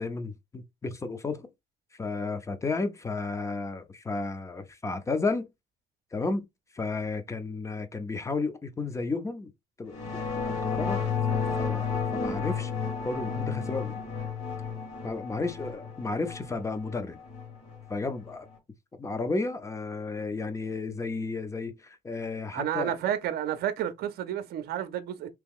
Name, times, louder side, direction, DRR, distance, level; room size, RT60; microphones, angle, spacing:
voice 1, 0.0-1.5 1.9-5.5 6.1-6.5 6.7-9.5 9.8-10.2 10.6-12.7 13.0-14.0 15.0-17.2 17.9-18.5 19.0-23.0, left 3 dB, 15° left, 0.6 m, -33 dB
sound 1, 9.9-18.5, left 5 dB, 40° left, 1.8 m, -32 dB
voice 2, 22.5-25.3, right 10 dB, 70° right, 0.6 m, -31 dB
3.0 x 2.3 x 3.6 m
cardioid pair, 110°, 17 cm